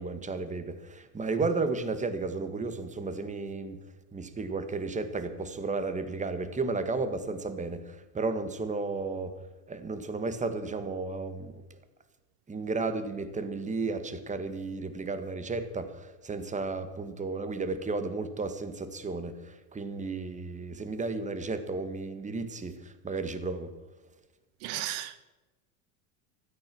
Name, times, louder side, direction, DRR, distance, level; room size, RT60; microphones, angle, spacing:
voice 1, 0.0-3.8 4.1-9.4 9.7-11.8 12.5-23.7, right 3 dB, 15° right, 1.7 m, -33 dB
voice 2, 24.6-25.2, right 13 dB, 60° right, 0.9 m, -35 dB
16.0 x 13.5 x 6.1 m
supercardioid pair, 115°, 46 cm